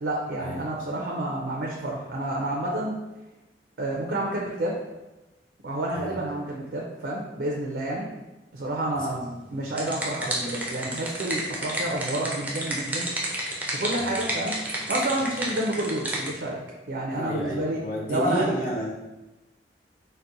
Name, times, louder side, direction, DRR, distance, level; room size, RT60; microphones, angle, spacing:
voice 1, 0.0-3.0 3.8-4.8 5.6-8.1 8.5-13.1 13.7-14.6 14.9-16.6 16.9-17.8 18.1-18.6, right 1 dB, 70° right, -2 dB, 0.4 m, -29 dB
sound 1, 9.4-16.3, right 1 dB, 10° right, 0.4 m, -31 dB
voice 2, 17.1-18.9, equal, 50° left, -3 dB, 0.6 m, -31 dB
4.0 x 2.1 x 2.5 m, 1.1 s
head